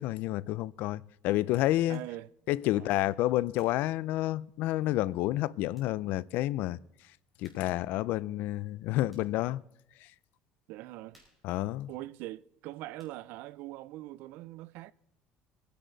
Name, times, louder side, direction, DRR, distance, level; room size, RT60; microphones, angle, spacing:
voice 1, 0.0-2.0 2.5-6.8 7.4-9.6 11.4-11.9, left 16 dB, 65° left, 0.4 m, -29 dB
sound 1, 1.9-2.2 2.8-4.8 5.3-5.4 5.7-6.0 6.3-6.4 7.4-7.9 8.2-9.5 10.0-10.2 10.5-12.7 13.0-13.4, left 1 dB, ahead, 4.6 m, -67 dB
voice 2, 1.9-2.3 2.7-2.9 10.7-11.2 11.9-14.9, right 16 dB, 70° right, 0.5 m, -42 dB
24.0 x 10.0 x 4.0 m
cardioid pair, 140°, 3 cm